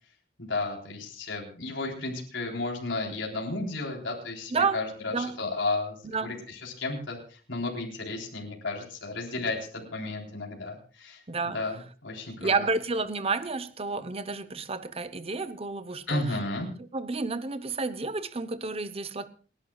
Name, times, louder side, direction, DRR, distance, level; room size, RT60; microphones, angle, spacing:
voice 1, 0.4-12.5 16.1-16.7, left 2 dB, 80° left, -1 dB, 3.8 m, -33 dB
voice 2, 4.5-4.8 5.1-5.4 6.0-6.4 11.3-11.6 12.4-16.4 16.9-19.3, right 4 dB, 30° right, 13 dB, 0.8 m, -30 dB
28.5 x 11.0 x 2.4 m, 0.39 s
head